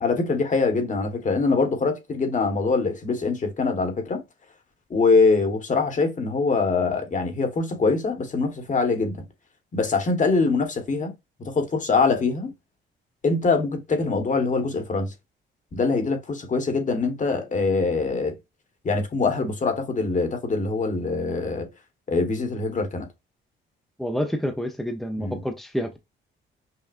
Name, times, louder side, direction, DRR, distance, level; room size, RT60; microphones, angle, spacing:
voice 1, 0.0-4.2 4.9-9.2 9.7-11.1 11.4-12.5 13.2-15.1 15.7-18.3 18.8-21.7 22.1-23.1 25.2-25.4, left 4 dB, 40° left, 1.4 m, -23 dB
voice 2, 24.0-26.0, equal, ahead, 0.8 m, -28 dB
5.8 x 2.4 x 2.6 m
cardioid pair, 90°, 20 cm